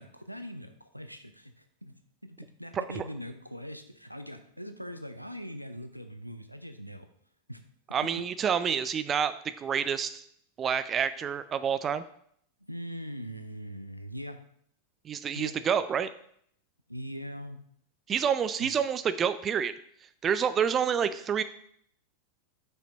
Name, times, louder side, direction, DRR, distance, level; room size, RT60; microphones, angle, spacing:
voice 1, 0.0-7.1 7.5-7.6 12.7-14.4 15.3-15.5 16.9-17.6 18.6-18.7, equal, 90° right, 9 dB, 0.6 m, -41 dB
voice 2, 2.7-3.1 7.9-10.2 10.6-12.0 15.0-16.1 18.1-19.7 20.2-21.4, right 7 dB, 25° right, 12 dB, 0.4 m, -28 dB
5.9 x 5.6 x 4.1 m, 0.67 s
figure-of-eight pair, 90°, 0 cm